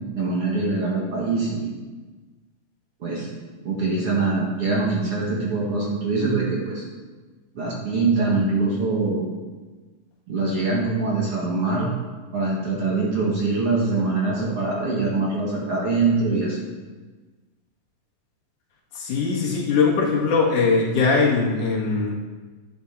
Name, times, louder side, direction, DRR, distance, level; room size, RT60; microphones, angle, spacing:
voice 1, 0.1-1.6 3.0-3.3 3.6-6.8 7.5-9.2 10.3-11.9 12.3-16.7, right 3 dB, 45° right, -4 dB, 2.4 m, -23 dB
voice 2, 18.9-22.1, left 4 dB, 65° left, -3 dB, 2.9 m, -21 dB
11.5 x 10.5 x 4.1 m, 1.3 s
omnidirectional pair, 4.1 m